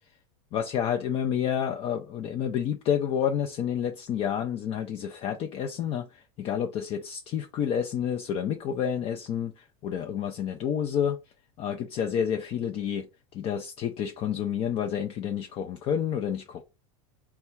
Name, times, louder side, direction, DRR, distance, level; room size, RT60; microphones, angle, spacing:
voice 1, 0.5-11.2 11.6-16.6, left 8 dB, 35° left, 0.4 m, -29 dB
3.4 x 2.3 x 4.3 m
supercardioid pair, 135°, 17 cm